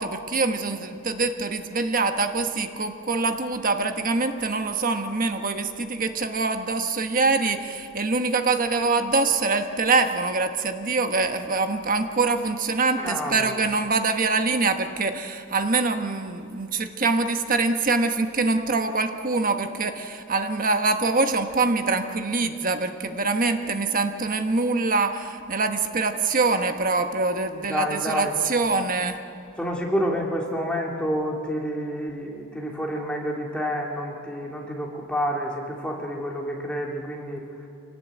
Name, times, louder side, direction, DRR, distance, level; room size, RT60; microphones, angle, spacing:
voice 1, 0.0-29.2, right 3 dB, 40° right, 7 dB, 1.2 m, -24 dB
voice 2, 13.0-13.6 27.7-28.4 29.6-37.4, equal, 5° left, -1 dB, 2.8 m, -29 dB
26.0 x 18.0 x 8.2 m, 2.5 s
head